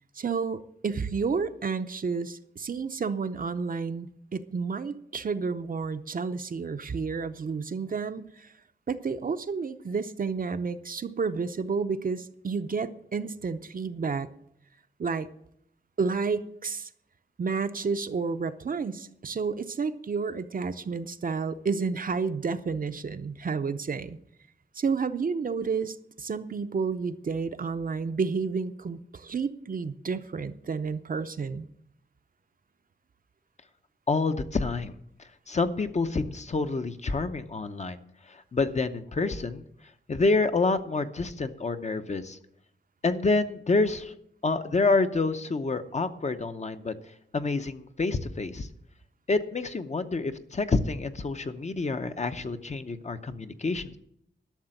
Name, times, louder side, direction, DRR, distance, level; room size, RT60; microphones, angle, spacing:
voice 1, 0.2-8.5 8.9-14.3 15.0-15.3 16.0-16.9 17.4-24.2 24.7-31.7, right 5 dB, 45° right, 10 dB, 0.6 m, -31 dB
voice 2, 34.1-38.0 38.2-39.7 40.1-42.4 43.0-44.1 44.4-46.9 47.3-48.7 49.3-54.0, left 3 dB, 35° left, 9 dB, 0.7 m, -28 dB
12.0 x 6.7 x 8.9 m, 0.74 s
wide cardioid pair, 150°, 19 cm